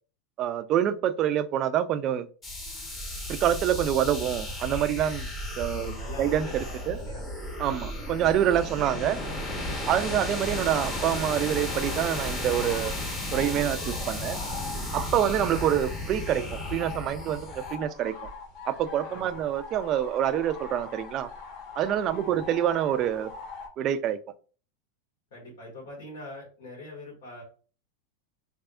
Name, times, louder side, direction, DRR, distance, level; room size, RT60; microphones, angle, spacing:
voice 1, 0.4-2.3 3.3-5.3 5.6-5.9 6.2-7.0 7.6-9.2 9.9-13.0 13.3-14.4 14.9-18.1 18.7-21.3 21.8-23.3 23.8-24.2, right 10 dB, 35° right, 10 dB, 0.3 m, -26 dB
sound 1, 2.4-17.7, left 1 dB, 20° left, 1.0 m, -34 dB
voice 2, 5.8-7.3 14.2-14.6 19.1-19.5 22.0-22.4 25.3-27.4, left 1 dB, 80° left, -5 dB, 1.8 m, -44 dB
sound 2, 9.7-23.7, left 4 dB, 60° left, 1.7 m, -43 dB
3.4 x 3.4 x 2.4 m, 0.37 s
supercardioid pair, 135°, 0 cm